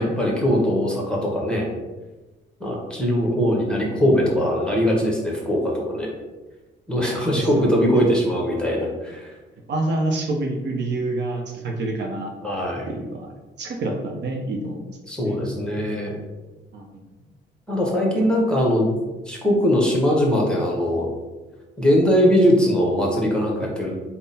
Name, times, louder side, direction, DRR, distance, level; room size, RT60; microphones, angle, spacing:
voice 1, 0.0-1.7 2.6-6.1 6.9-9.3 12.4-12.9 15.1-16.2 17.7-18.9 19.3-21.1 21.8-23.9, equal, 5° left, -2 dB, 1.0 m, -21 dB
voice 2, 7.4-7.7 9.7-12.3 12.9-13.3 13.6-14.8 15.2-15.5 16.7-16.9, right 2 dB, 60° right, 2 dB, 0.7 m, -27 dB
3.7 x 2.0 x 4.0 m, 1.2 s
cardioid pair, 90°, 20 cm